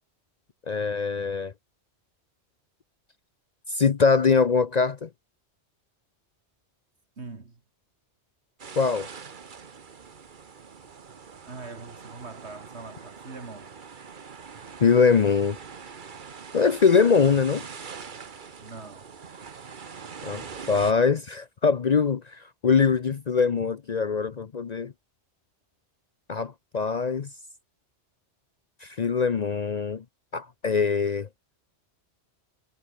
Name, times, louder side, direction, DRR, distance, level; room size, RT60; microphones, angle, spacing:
voice 1, 0.7-1.5 3.7-5.1 8.8-9.1 14.8-15.6 16.5-17.6 20.2-20.4 20.7-22.2 22.6-24.9 26.3-27.3 28.8-30.0 30.3-31.3, left 5 dB, 45° left, 0.7 m, -22 dB
voice 2, 7.2-7.6 11.5-13.7 18.6-19.0, right 3 dB, 70° right, 2.8 m, -42 dB
sound 1, 8.6-20.9, right 6 dB, 45° right, 1.2 m, -43 dB
omnidirectional pair, 1.2 m